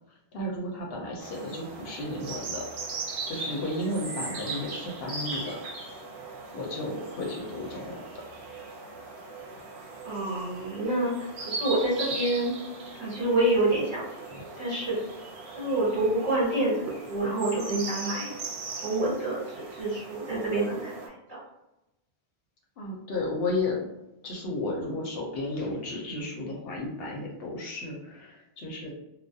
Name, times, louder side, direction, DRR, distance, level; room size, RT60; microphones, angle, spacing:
voice 1, 0.3-2.6 3.3-5.6 6.5-8.0 22.8-23.9 24.2-28.9, left 2 dB, 65° left, -1 dB, 0.8 m, -33 dB
sound 1, 1.2-21.1, right 3 dB, 75° right, 0.9 m, -39 dB
voice 2, 10.0-12.5 13.0-15.0 15.5-18.3 18.8-21.4, right 1 dB, 50° right, -7 dB, 1.4 m, -28 dB
2.3 x 2.2 x 2.6 m, 0.92 s
omnidirectional pair, 1.1 m